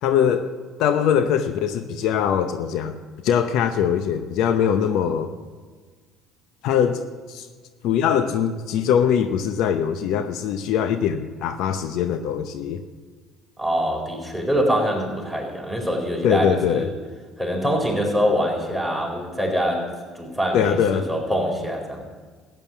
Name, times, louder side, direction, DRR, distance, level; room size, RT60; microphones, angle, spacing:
voice 1, 0.0-0.5 0.8-3.0 3.2-5.3 6.6-7.5 7.8-12.8 16.2-16.9 20.5-21.1, left 8 dB, 70° left, 10 dB, 0.7 m, -22 dB
voice 2, 13.6-16.9 17.4-19.9 20.1-22.0, equal, 5° left, 0 dB, 4.4 m, -24 dB
14.0 x 9.1 x 7.2 m, 1.5 s
hypercardioid pair, 75°, 0 cm